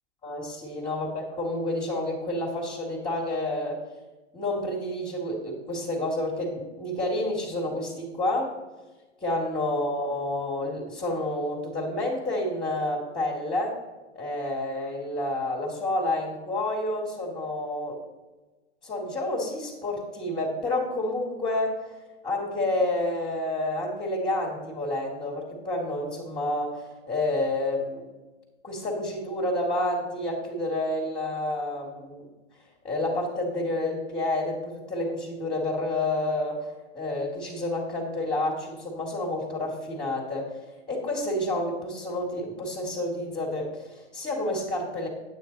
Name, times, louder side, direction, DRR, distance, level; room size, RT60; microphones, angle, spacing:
voice 1, 0.2-3.8 4.3-8.5 9.2-13.8 14.2-18.0 18.8-21.9 22.2-28.1 28.6-32.3 32.8-40.5 40.9-45.1, left 1 dB, 15° left, -4 dB, 2.1 m, -29 dB
9.2 x 8.6 x 4.0 m, 1.2 s
hypercardioid pair, 125°, 35 cm